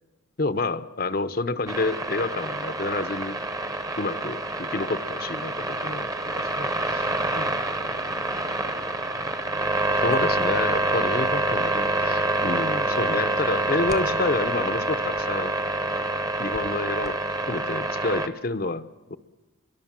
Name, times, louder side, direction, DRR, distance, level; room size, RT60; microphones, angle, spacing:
voice 1, 0.4-3.4 4.0-7.1 7.3-7.5 10.0-15.5 16.4-19.2, left 3 dB, 45° left, 12 dB, 0.8 m, -29 dB
voice 2, 1.1-1.4 7.8-9.3, right 1 dB, 65° right, 6 dB, 4.3 m, -50 dB
sound 1, 1.7-18.3, right 2 dB, 15° right, 1.0 m, -27 dB
27.5 x 23.0 x 7.4 m, 1.2 s
head